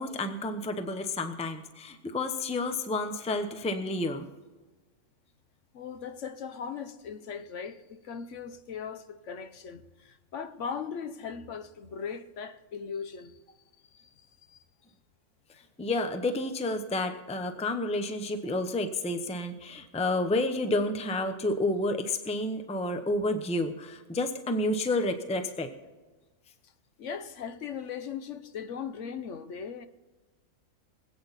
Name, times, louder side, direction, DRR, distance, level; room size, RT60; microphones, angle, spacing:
voice 1, 0.0-4.3 15.8-25.7, left 2 dB, 5° left, 0.6 m, -30 dB
voice 2, 5.7-13.4 13.9-14.1 14.5-14.6 27.0-29.9, left 6 dB, 60° left, 1.1 m, -39 dB
25.0 x 8.7 x 4.1 m
omnidirectional pair, 1.5 m